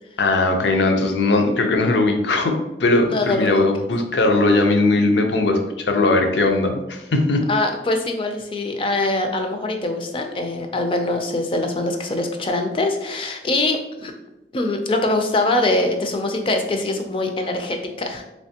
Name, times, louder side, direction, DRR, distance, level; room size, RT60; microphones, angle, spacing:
voice 1, 0.2-7.4, left 2 dB, 80° left, 4 dB, 0.5 m, -19 dB
voice 2, 3.1-3.9 7.5-14.1 14.5-18.3, left 2 dB, 30° left, 5 dB, 0.4 m, -23 dB
3.3 x 3.2 x 2.8 m, 0.95 s
head